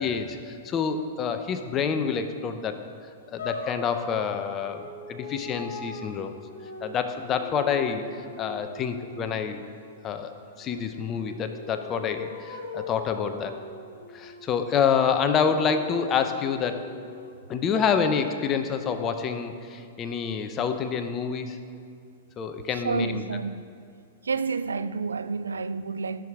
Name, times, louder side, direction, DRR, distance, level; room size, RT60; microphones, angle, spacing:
voice 1, 0.0-2.8 3.3-6.4 6.8-9.6 10.0-13.6 14.1-16.9 17.5-21.6 22.4-23.2, left 6 dB, 30° left, 0.8 m, -27 dB
sound 1, 3.4-9.4 10.6-15.0 15.4-17.3, left 3 dB, 65° left, 1.7 m, -41 dB
voice 2, 22.7-23.6 24.2-26.2, right 4 dB, 80° right, 0.3 m, -29 dB
16.5 x 6.4 x 3.6 m
figure-of-eight pair, 105°, 0 cm